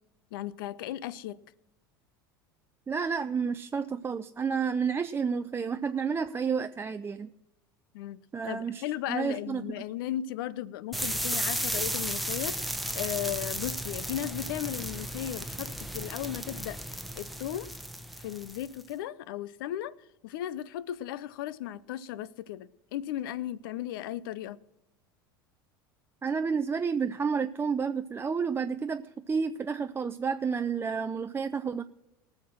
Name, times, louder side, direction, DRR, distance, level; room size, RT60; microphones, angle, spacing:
voice 1, 0.3-1.4 7.9-8.2 8.5-16.8 17.2-17.7 18.2-19.9 20.2-24.6, left 12 dB, 70° left, 0.6 m, -36 dB
voice 2, 2.9-7.3 8.3-9.6 26.2-31.8, right 6 dB, 20° right, 0.5 m, -30 dB
sound 1, 10.9-18.8, equal, ahead, 1.0 m, -34 dB
18.5 x 6.6 x 6.0 m
hypercardioid pair, 85°, 12 cm